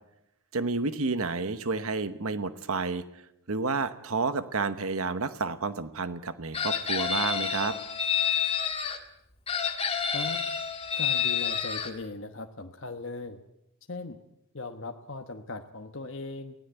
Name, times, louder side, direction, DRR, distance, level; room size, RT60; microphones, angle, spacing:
voice 1, 0.5-3.0 3.5-7.8, right 4 dB, 75° right, 12 dB, 1.1 m, -30 dB
Chicken rooster, 6.5-9.0 9.5-11.9, left 7 dB, 25° left, 1.9 m, -29 dB
voice 2, 11.0-13.4 13.9-14.2 14.5-16.5, left 3 dB, 55° left, 4 dB, 1.2 m, -38 dB
23.5 x 17.0 x 8.1 m, 0.82 s
head